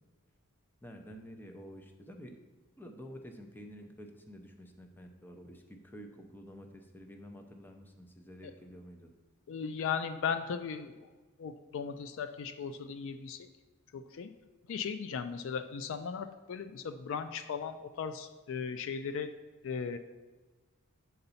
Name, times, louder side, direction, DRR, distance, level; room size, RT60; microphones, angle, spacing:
voice 1, 0.8-2.4 2.8-9.1, equal, 10° left, 4 dB, 0.6 m, -49 dB
voice 2, 9.5-10.9 11.4-13.4 13.9-14.3 14.7-19.3 19.6-20.0, left 6 dB, 60° left, 10 dB, 0.3 m, -37 dB
7.7 x 4.0 x 5.6 m, 1.2 s
head